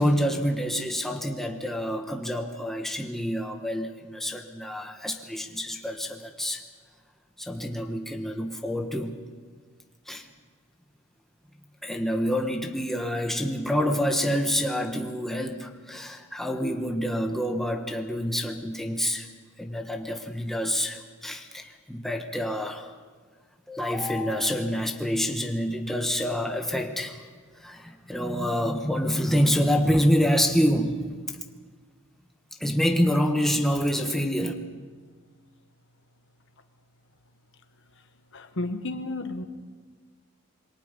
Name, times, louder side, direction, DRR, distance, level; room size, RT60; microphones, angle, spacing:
voice 1, 0.0-6.6 7.4-9.1 10.1-10.3 11.8-19.3 19.6-22.9 23.7-27.2 27.6-31.1 32.6-34.5, equal, ahead, 3 dB, 1.3 m, -27 dB
voice 2, 38.3-39.4, left 2 dB, 60° left, 8 dB, 1.3 m, -32 dB
27.0 x 22.5 x 5.3 m, 1.5 s
head